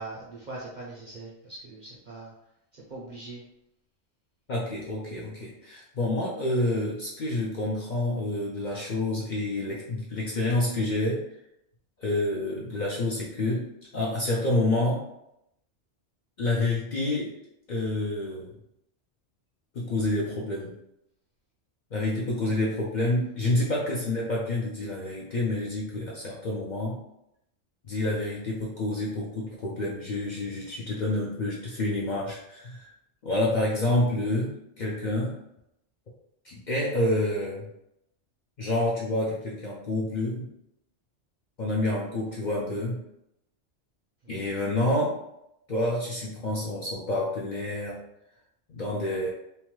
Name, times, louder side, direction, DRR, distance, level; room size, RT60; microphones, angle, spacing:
voice 1, 0.0-2.3 2.7-3.4, right 2 dB, 55° right, -4 dB, 0.5 m, -41 dB
voice 2, 4.5-11.2 12.0-13.6 13.9-15.0 16.4-17.3 17.7-18.5 19.7-20.8 21.9-27.0 27.9-32.9 33.2-34.5 34.8-35.4 36.4-37.7 38.6-40.5 41.6-43.0 44.3-45.2 45.7-48.0 48.7-49.3, left 1 dB, 55° left, -4 dB, 0.5 m, -28 dB
2.8 x 2.1 x 3.0 m, 0.80 s
omnidirectional pair, 1.2 m